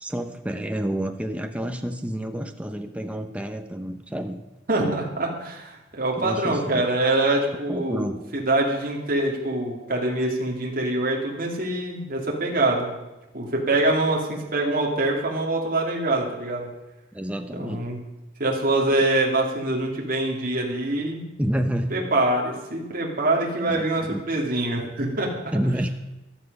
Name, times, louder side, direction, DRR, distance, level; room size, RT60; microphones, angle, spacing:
voice 1, 0.0-4.4 6.2-6.9 7.7-8.2 17.1-17.8 21.4-22.0 23.5-24.2 25.5-25.9, equal, 5° right, 5 dB, 0.8 m, -29 dB
voice 2, 4.7-12.9 13.3-16.7 17.5-18.0 18.4-21.3 21.9-25.5, right 2 dB, 45° right, -1 dB, 2.6 m, -24 dB
14.5 x 12.0 x 5.4 m, 1.0 s
head